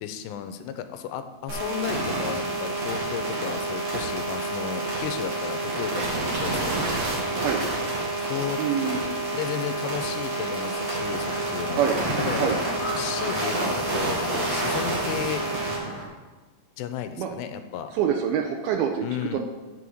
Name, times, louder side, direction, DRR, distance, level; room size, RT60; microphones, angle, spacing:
voice 1, 0.0-6.9 8.3-8.6 9.3-11.8 12.3-12.5 13.0-15.4 16.8-17.9 19.0-19.4, left 10 dB, 85° left, 9 dB, 2.7 m, -34 dB
sound 1, 1.5-15.8, right 2 dB, 45° right, 3.1 m, -28 dB
voice 2, 8.6-9.0 11.7-12.0 12.4-12.6 17.2-17.3 17.9-19.4, right 8 dB, 80° right, 4 dB, 2.3 m, -25 dB
sound 2, 11.0-16.0, equal, 5° left, 1.3 m, -35 dB
8.3 x 5.5 x 7.8 m, 1.2 s
omnidirectional pair, 4.9 m